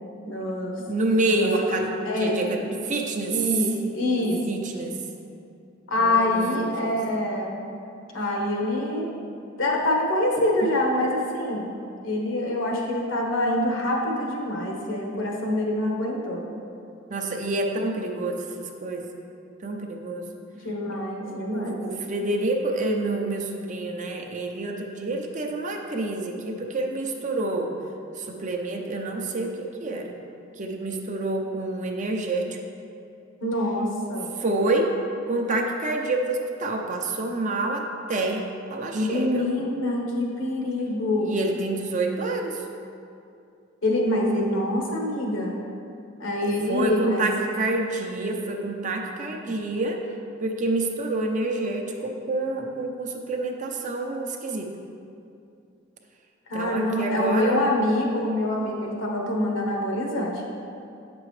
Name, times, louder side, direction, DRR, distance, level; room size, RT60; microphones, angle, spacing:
voice 1, 0.2-0.8 1.1-2.8 3.3-4.6 5.9-7.6 8.1-9.1 9.6-11.7 12.0-16.5 20.5-21.8 33.4-34.3 38.9-41.3 43.8-45.6 46.2-47.2 56.5-60.5, left 1 dB, 75° left, -1 dB, 1.2 m, -25 dB
voice 2, 0.9-1.9 2.2-3.3 4.2-5.0 6.0-7.0 17.1-19.1 19.6-20.2 21.2-27.7 28.2-30.1 30.6-32.6 34.4-34.9 35.3-38.4 38.7-39.4 41.2-42.6 46.4-50.0 50.4-54.7 56.5-57.7, right 2 dB, 40° right, 2 dB, 0.6 m, -28 dB
8.5 x 6.1 x 3.2 m, 2.5 s
head